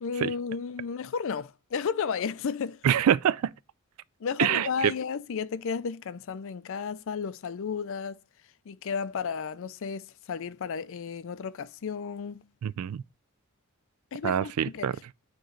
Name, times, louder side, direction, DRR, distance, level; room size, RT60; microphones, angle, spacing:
voice 1, 0.0-2.8 4.2-8.2 8.7-12.5 14.1-14.9, left 6 dB, 65° left, 0.4 m, -33 dB
voice 2, 2.8-3.5 4.4-4.9 12.6-13.0 14.2-14.9, right 9 dB, 80° right, 0.3 m, -25 dB
8.7 x 3.1 x 3.8 m
head